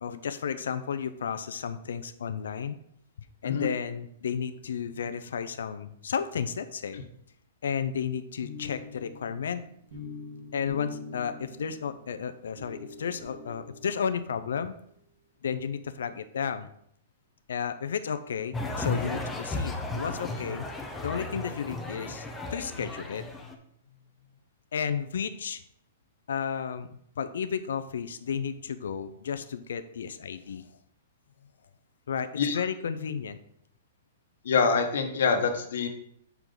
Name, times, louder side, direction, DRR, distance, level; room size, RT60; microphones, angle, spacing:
voice 1, 0.0-2.8 3.4-7.0 7.6-9.6 10.5-14.8 15.4-16.7 17.5-20.6 21.0-23.3 24.7-25.6 26.3-26.9 27.2-30.7 32.1-33.4, left 7 dB, 90° left, 10 dB, 0.5 m, -33 dB
sound 1, 8.4-14.5, left 4 dB, 55° right, 2.7 m, -44 dB
sound 2, 18.5-23.5, left 2 dB, 5° left, 0.6 m, -34 dB
voice 2, 34.4-35.9, left 5 dB, 70° left, 4 dB, 1.1 m, -25 dB
6.8 x 4.6 x 3.8 m, 0.70 s
hypercardioid pair, 160°, 0 cm